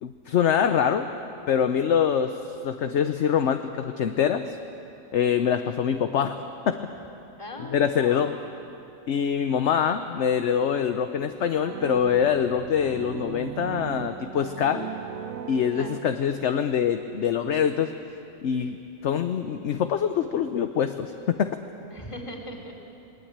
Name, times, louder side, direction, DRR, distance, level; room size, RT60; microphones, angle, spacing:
voice 1, 0.0-1.1 1.5-2.4 2.6-4.6 5.1-6.4 6.7-6.8 7.7-8.3 9.1-14.9 15.5-17.9 18.4-21.6, left 8 dB, 60° left, 8 dB, 1.0 m, -24 dB
voice 2, 7.4-8.4 15.7-16.1 21.9-22.7, equal, 20° left, 0 dB, 3.0 m, -39 dB
sound 1, 11.6-16.6, right 10 dB, 85° right, 1.2 m, -38 dB
21.5 x 20.0 x 8.8 m, 2.8 s
omnidirectional pair, 1.5 m